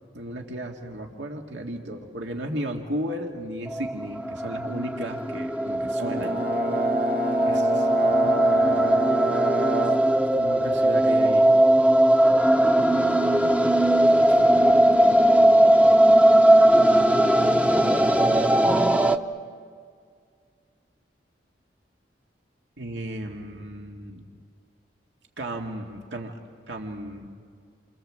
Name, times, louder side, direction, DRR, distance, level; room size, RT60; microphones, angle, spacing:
voice 1, 0.1-6.4 7.4-9.0 10.4-11.5 14.3-14.7 22.8-24.3 25.4-26.3 26.7-27.3, right 1 dB, 90° right, 1 dB, 2.1 m, -35 dB
sound 1, 3.7-19.2, right 1 dB, 5° right, 0.7 m, -19 dB
Brass instrument, 6.0-10.1, right 2 dB, 55° right, 1.2 m, -28 dB
29.5 x 25.5 x 7.6 m, 2.2 s
head